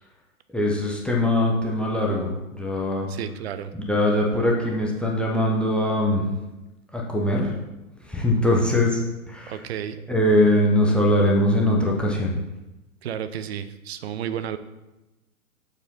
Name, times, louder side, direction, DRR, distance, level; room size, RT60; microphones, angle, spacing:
voice 1, 0.5-3.1 3.9-6.2 6.9-7.5 8.0-9.0 9.3-9.6 10.1-12.4, left 1 dB, ahead, -3 dB, 0.6 m, -21 dB
voice 2, 3.1-3.7 9.5-10.0 13.0-14.6, right 9 dB, 50° right, 12 dB, 0.7 m, -32 dB
6.9 x 4.9 x 5.6 m, 1.0 s
figure-of-eight pair, 115°, 42 cm